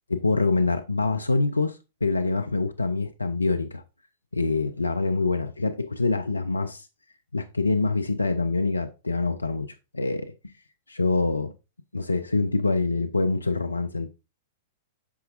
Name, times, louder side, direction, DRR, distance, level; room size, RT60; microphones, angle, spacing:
voice 1, 0.1-3.8 4.3-6.9 7.3-10.3 10.9-11.5 11.9-14.1, left 3 dB, 85° left, 0.5 m, -25 dB
8.4 x 5.7 x 2.6 m
figure-of-eight pair, 100°, 0 cm